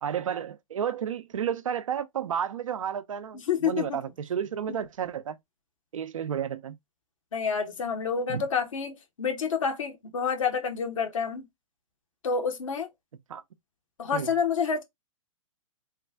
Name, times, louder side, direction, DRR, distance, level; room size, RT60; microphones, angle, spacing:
voice 1, 0.0-5.4 5.9-6.7 8.3-8.4 13.3-13.4 14.1-14.4, right 8 dB, 70° right, 0.6 m, -31 dB
voice 2, 3.3-4.0 4.7-4.8 7.3-11.5 12.2-12.9 14.0-14.8, left 6 dB, 70° left, 1.1 m, -28 dB
3.2 x 2.3 x 3.4 m
figure-of-eight pair, 115°, 17 cm